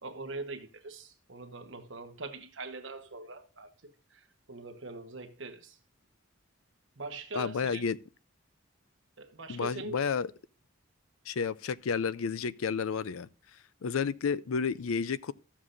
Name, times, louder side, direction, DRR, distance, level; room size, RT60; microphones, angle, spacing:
voice 1, 0.0-5.8 7.0-7.9 9.2-10.1, right 3 dB, 65° right, 1.1 m, -42 dB
voice 2, 7.3-8.0 9.5-10.3 11.3-13.3 13.8-15.3, left 6 dB, 85° left, 0.5 m, -31 dB
14.0 x 7.3 x 2.5 m
head